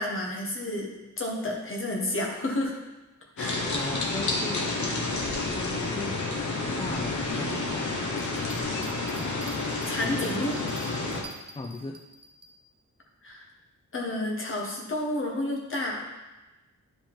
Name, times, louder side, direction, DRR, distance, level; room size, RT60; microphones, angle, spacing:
voice 1, 0.0-2.8 3.4-3.6 9.8-10.6 13.2-13.4 13.9-16.1, left 1 dB, 40° left, 0 dB, 1.5 m, -30 dB
sound 1, 3.4-11.2, left 3 dB, 70° left, 1.3 m, -30 dB
voice 2, 3.7-4.7 5.5-6.2 6.8-8.0 11.5-12.0, left 3 dB, 20° left, 4 dB, 0.4 m, -37 dB
sound 2, 8.1-12.5, right 3 dB, 30° right, 0.8 m, -47 dB
10.5 x 5.1 x 3.6 m, 1.1 s
wide cardioid pair, 160°, 31 cm